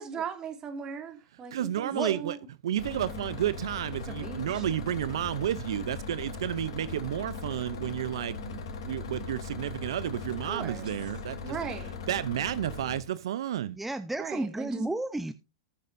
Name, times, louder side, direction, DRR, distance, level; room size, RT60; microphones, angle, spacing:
voice 1, 0.0-2.4 4.1-4.6 10.5-10.9 11.4-11.9 14.2-14.9, right 6 dB, 25° right, 2.4 m, -38 dB
voice 2, 1.5-2.4 2.6-11.6 12.1-13.8, right 11 dB, 75° right, 0.5 m, -31 dB
sound 1, 2.8-13.0, left 4 dB, 70° left, 3.3 m, -39 dB
voice 3, 13.7-15.3, right 2 dB, 5° right, 0.7 m, -32 dB
19.0 x 6.5 x 2.6 m
hypercardioid pair, 120°, 3 cm